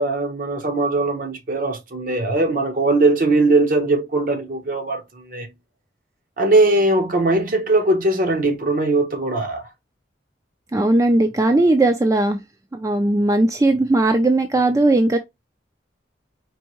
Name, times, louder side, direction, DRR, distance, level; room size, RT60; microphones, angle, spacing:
voice 1, 0.0-5.5 6.4-9.7, right 2 dB, 50° right, 0.8 m, -20 dB
voice 2, 10.7-12.4 12.7-15.2, right 2 dB, 20° right, 0.3 m, -18 dB
4.5 x 2.6 x 2.9 m
head